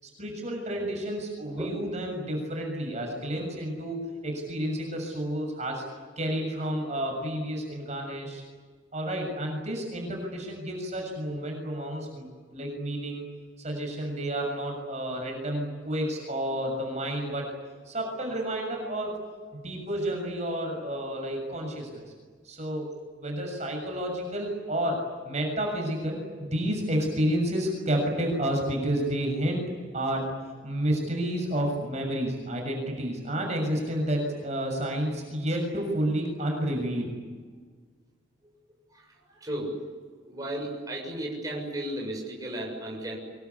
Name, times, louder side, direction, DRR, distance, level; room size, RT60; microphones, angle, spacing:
voice 1, 0.0-5.8 6.2-8.4 8.9-13.3 13.6-17.5 17.9-19.2 19.6-22.1 22.4-22.9 23.2-29.6 29.9-30.2 30.6-37.1, right 1 dB, 35° right, 1 dB, 6.8 m, -30 dB
voice 2, 38.9-39.8 40.2-43.2, right 1 dB, 20° right, -2 dB, 7.2 m, -34 dB
25.0 x 23.5 x 9.9 m, 1.5 s
head